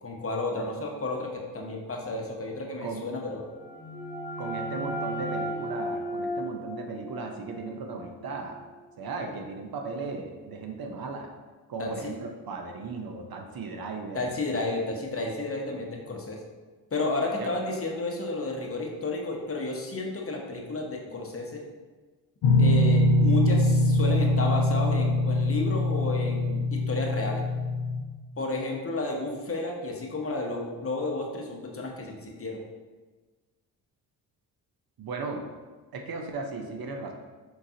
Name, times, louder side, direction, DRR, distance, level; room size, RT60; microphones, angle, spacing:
voice 1, 0.0-3.5 11.8-12.1 14.1-16.4 16.9-21.7 22.6-27.4 28.4-32.6, left 2 dB, 30° left, 0 dB, 0.9 m, -32 dB
sound 1, 3.4-8.9, equal, 20° right, 1.5 m, -35 dB
voice 2, 4.4-8.6 9.0-11.3 11.7-14.3 17.4-17.5 35.0-35.4 35.9-37.1, right 3 dB, 50° right, 3 dB, 0.7 m, -36 dB
sound 2, 22.4-28.0, left 1 dB, 60° left, 0.6 m, -23 dB
4.8 x 3.7 x 2.8 m, 1.3 s
supercardioid pair, 65°, 45 cm